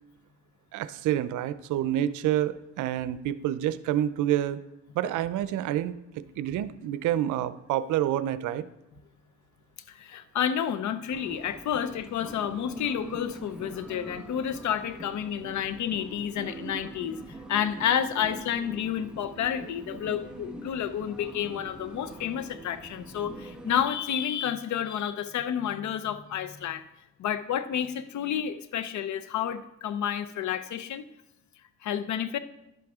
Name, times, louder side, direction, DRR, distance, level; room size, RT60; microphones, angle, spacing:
voice 1, 0.7-4.6 4.9-8.7, right 12 dB, 85° right, 15 dB, 0.6 m, -28 dB
voice 2, 9.9-17.2 17.5-26.8 27.2-31.1 31.8-32.4, left 9 dB, 70° left, 12 dB, 0.8 m, -30 dB
sound 1, 11.1-23.9, right 2 dB, 5° right, 1.2 m, -43 dB
11.0 x 7.7 x 3.6 m, 0.91 s
cardioid pair, 90°, 30 cm